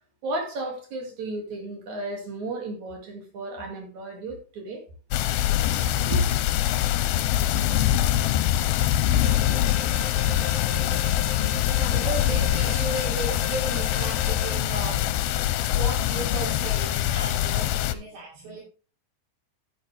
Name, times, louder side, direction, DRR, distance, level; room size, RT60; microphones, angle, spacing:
voice 1, 0.2-4.8 5.9-6.3, equal, 55° right, 3.3 m, -32 dB
sound 1, 5.1-17.9, left 12 dB, 85° left, 2.5 m, -24 dB
Alarm, 9.2-14.5, left 4 dB, 55° left, 1.0 m, -38 dB
voice 2, 9.9-18.6, right 2 dB, 80° right, 4.9 m, -36 dB
10.0 x 9.7 x 3.3 m
omnidirectional pair, 4.4 m